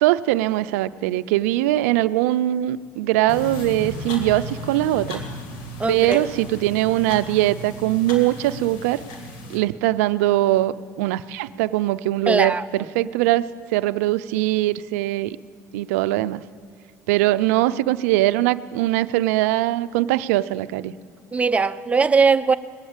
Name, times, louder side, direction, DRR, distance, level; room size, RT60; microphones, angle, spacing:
voice 1, 0.0-5.2 5.9-9.0 9.5-15.4 15.7-16.4 17.1-20.9, right 15 dB, 85° right, 0.4 m, -21 dB
sound 1, 3.3-9.6, left 1 dB, 75° left, 2.0 m, -35 dB
voice 2, 5.8-6.3 12.3-12.7 21.3-22.6, right 4 dB, 15° right, 0.6 m, -19 dB
19.5 x 8.1 x 8.7 m
supercardioid pair, 85°, 8 cm